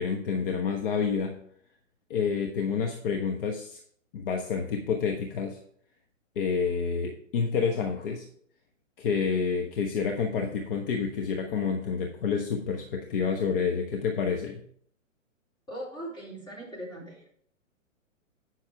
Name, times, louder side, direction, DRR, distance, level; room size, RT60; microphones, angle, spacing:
voice 1, 0.0-1.4 2.1-3.8 4.1-5.6 6.4-8.3 9.0-14.6, left 6 dB, 45° left, 2 dB, 1.2 m, -28 dB
voice 2, 15.7-17.3, right 1 dB, 10° left, -5 dB, 3.7 m, -40 dB
9.8 x 6.2 x 4.7 m, 0.63 s
hypercardioid pair, 135°, 40 cm